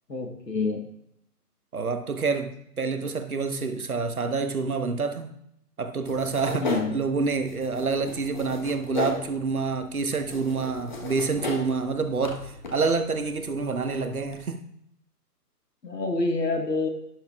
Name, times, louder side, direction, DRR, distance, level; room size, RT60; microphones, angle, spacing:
voice 1, 0.1-0.8 6.6-7.0 15.8-16.9, left 3 dB, 80° left, 4 dB, 1.7 m, -27 dB
voice 2, 1.7-5.3 5.8-14.6, right 4 dB, 60° right, 8 dB, 1.1 m, -27 dB
sound 1, 6.0-14.4, left 2 dB, 30° left, 1.1 m, -37 dB
12.0 x 10.5 x 2.3 m, 0.76 s
figure-of-eight pair, 145°, 48 cm